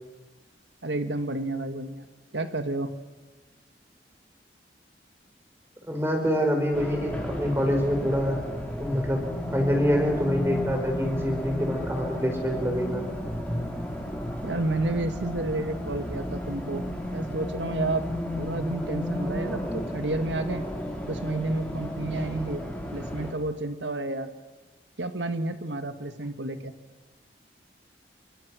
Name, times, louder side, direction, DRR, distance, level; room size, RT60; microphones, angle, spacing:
voice 1, 0.8-2.0 2.3-2.9 14.4-16.8 17.1-18.0 18.4-20.6 21.1-22.6 22.9-24.3 25.0-26.7, right 2 dB, 90° right, 9 dB, 1.8 m, -30 dB
voice 2, 5.9-8.4 8.8-9.2 9.5-13.1, equal, 15° right, 3 dB, 4.7 m, -26 dB
Race car auto racing, 6.7-23.3, equal, 5° left, 4.5 m, -33 dB
28.5 x 24.0 x 6.3 m, 1.3 s
head